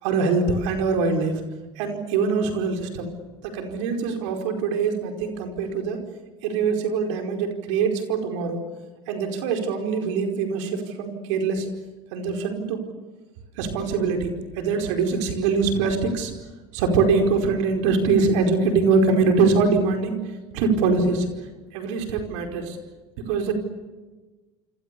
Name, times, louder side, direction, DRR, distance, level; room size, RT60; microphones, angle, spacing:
voice 1, 0.0-1.4 1.8-3.2 3.4-6.0 6.4-8.6 9.1-11.7 12.1-12.8 13.6-16.3 16.7-20.2 20.5-21.3 21.7-22.8 23.2-23.5, right 4 dB, 85° right, 4 dB, 4.8 m, -23 dB
28.0 x 26.5 x 6.9 m, 1.2 s
supercardioid pair, 90°, 15 cm